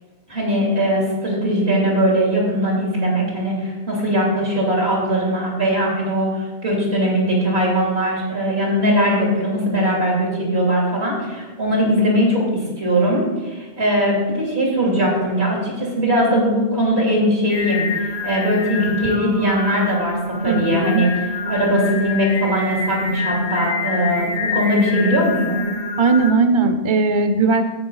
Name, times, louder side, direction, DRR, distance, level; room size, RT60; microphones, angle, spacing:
voice 1, 0.3-21.1 21.5-25.7, equal, 85° right, -3 dB, 3.3 m, -20 dB
Singing, 17.5-26.3, left 3 dB, 85° left, 1.4 m, -26 dB
voice 2, 20.4-21.1 26.0-27.6, right 3 dB, 35° right, 8 dB, 0.5 m, -18 dB
10.5 x 8.4 x 3.9 m, 1.2 s
omnidirectional pair, 1.0 m